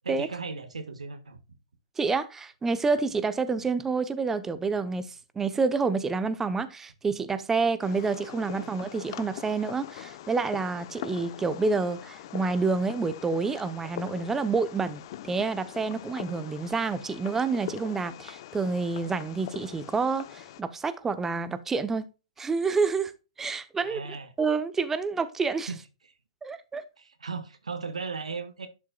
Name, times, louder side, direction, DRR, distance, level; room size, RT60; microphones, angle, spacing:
voice 1, 0.0-1.4 23.8-24.3 25.7-25.8 27.0-28.7, right 4 dB, 90° right, 1.5 m, -36 dB
voice 2, 2.0-22.0 22.4-23.1 23.4-24.0 24.4-25.7 26.4-26.8, right 4 dB, 10° right, 0.8 m, -28 dB
Fireworks, 7.8-20.6, left 13 dB, 50° left, 0.8 m, -43 dB
11.5 x 6.3 x 2.3 m
hypercardioid pair, 130°, 3 cm